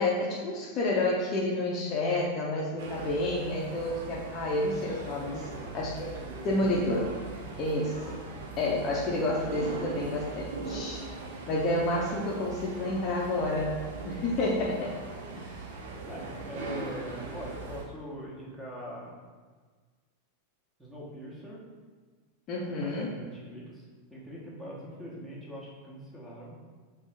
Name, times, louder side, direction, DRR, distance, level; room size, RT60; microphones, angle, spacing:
voice 1, 0.0-5.3 5.7-6.2 6.4-7.1 7.6-8.2 8.6-11.0 11.5-13.8 14.0-14.9 15.4-15.5 22.5-23.1, left 2 dB, 35° left, -3 dB, 0.7 m, -29 dB
sound 1, 2.8-17.8, right 3 dB, 55° right, 0.7 m, -40 dB
voice 2, 5.1-5.8 6.2-6.8 7.0-7.6 16.1-19.2 20.8-21.6 22.6-23.8 24.1-26.6, equal, 5° right, -5 dB, 1.2 m, -42 dB
5.1 x 2.9 x 3.5 m, 1.5 s
figure-of-eight pair, 90°, 0 cm